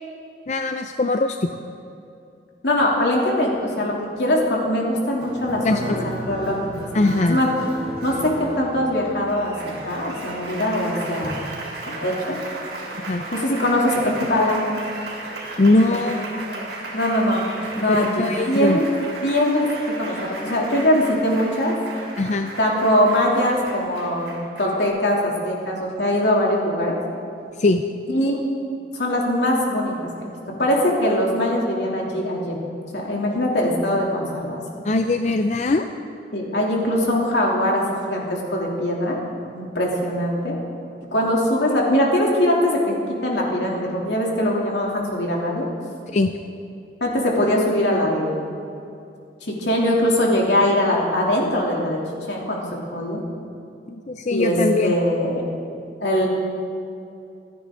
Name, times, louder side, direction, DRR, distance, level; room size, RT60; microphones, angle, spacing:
voice 1, 0.5-1.5 5.6-6.1 6.9-7.4 12.9-13.2 15.6-16.4 17.9-18.8 22.2-22.5 27.6-27.8 34.8-35.9 46.1-46.3 53.9-54.9, left 2 dB, 40° left, 6 dB, 0.5 m, -21 dB
voice 2, 2.6-6.6 7.2-7.5 8.0-11.3 11.9-12.4 13.3-14.7 15.9-16.1 16.9-17.5 17.8-18.9 19.2-19.7 20.0-21.7 22.6-27.0 28.1-28.4 28.9-29.9 30.2-30.3 30.6-32.6 32.9-34.6 36.3-39.2 39.5-40.6 41.1-45.7 47.0-48.5 49.4-52.0 52.3-52.7 52.9-53.2 54.3-54.6 54.8-55.4 56.0-56.3, left 1 dB, 80° left, -2 dB, 3.0 m, -22 dB
Applause, 5.2-24.9, right 1 dB, 80° right, 3.7 m, -34 dB
26.5 x 9.9 x 3.8 m, 2.6 s
head